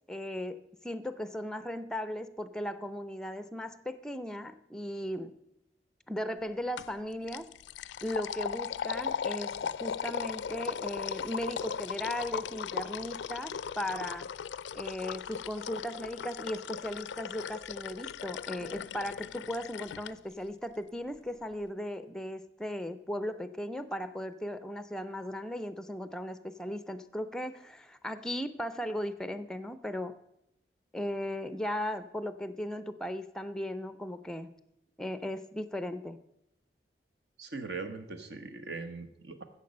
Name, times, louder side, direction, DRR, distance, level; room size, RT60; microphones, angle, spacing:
voice 1, 0.1-5.4 6.1-7.5 8.0-14.3 14.7-30.2 30.9-34.5 35.0-36.2, left 1 dB, 5° left, 13 dB, 0.5 m, -37 dB
sound 1, 6.8-7.0 7.3-20.1, left 7 dB, 80° left, 0.4 m, -38 dB
voice 2, 37.4-39.4, right 3 dB, 60° right, 7 dB, 1.2 m, -40 dB
15.5 x 6.8 x 5.3 m, 0.80 s
head